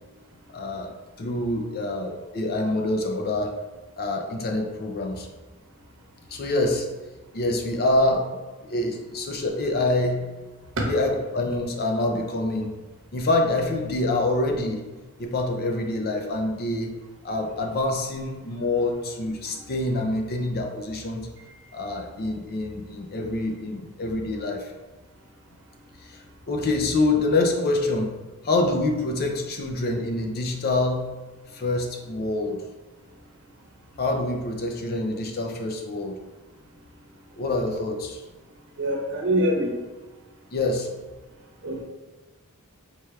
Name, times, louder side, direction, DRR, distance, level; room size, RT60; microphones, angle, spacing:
voice 1, 0.5-3.6 4.0-5.3 6.3-6.9 7.3-8.3 8.6-10.2 10.9-12.7 13.1-14.9 15.2-16.9 17.2-21.3 21.7-24.7 26.0-28.1 28.4-31.0 31.5-32.6 34.0-36.2 37.4-38.2 40.5-40.9, left 2 dB, 45° left, 3 dB, 0.5 m, -26 dB
voice 2, 38.8-39.7 41.6-41.8, equal, 60° right, -1 dB, 0.9 m, -24 dB
4.3 x 3.3 x 2.3 m, 1.2 s
head